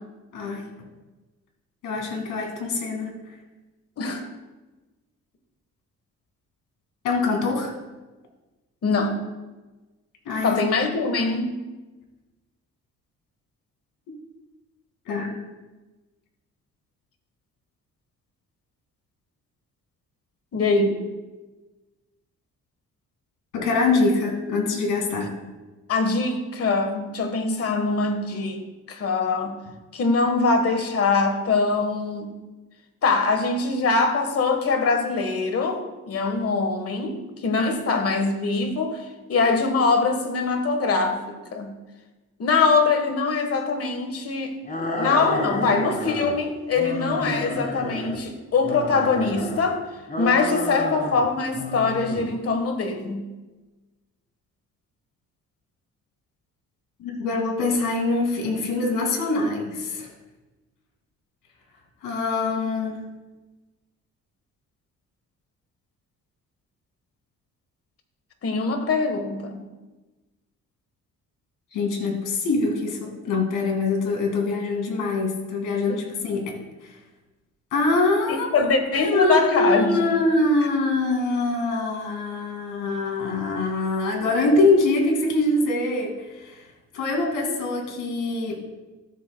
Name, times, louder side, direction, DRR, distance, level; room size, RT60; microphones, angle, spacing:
voice 1, 0.3-0.7 1.8-3.3 7.0-7.7 10.3-10.6 14.1-14.2 15.1-15.3 23.5-25.3 57.0-60.1 62.0-63.0 71.7-76.9 77.7-78.5 79.0-86.6 86.9-88.6, left 3 dB, 85° left, 1 dB, 2.2 m, -24 dB
voice 2, 4.0-4.3 8.8-9.2 10.4-11.6 20.5-21.0 25.9-29.6 29.9-32.3 33.0-41.2 41.5-41.7 42.4-44.6 45.0-49.8 50.2-53.3 68.4-69.6 75.9-76.0 78.5-80.2, left 4 dB, 50° left, 6 dB, 1.4 m, -23 dB
sound 1, 44.7-46.4 46.8-48.2 48.6-49.7 50.1-51.3 51.5-52.3, left 1 dB, 30° left, 1.5 m, -30 dB
13.5 x 7.6 x 2.2 m, 1.2 s
cardioid pair, 90°, 30 cm